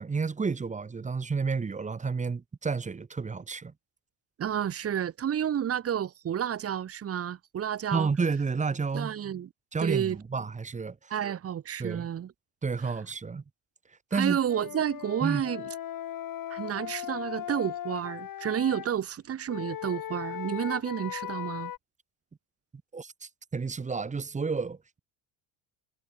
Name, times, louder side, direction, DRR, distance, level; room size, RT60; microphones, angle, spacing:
voice 1, 0.0-3.7 7.9-9.1 9.7-11.1 11.8-12.1 12.6-13.4 14.1-14.4 15.2-15.4 22.9-25.0, right 5 dB, 15° right, 1.1 m, -31 dB
voice 2, 4.4-8.1 8.9-9.5 9.8-10.2 11.1-12.3 14.1-15.7 16.5-21.7, right 9 dB, 35° right, 1.0 m, -30 dB
Wind instrument woodwind instrument, 14.5-18.9 19.5-21.8, left 11 dB, 50° left, 4.6 m, -38 dB
cardioid pair, 150°, 42 cm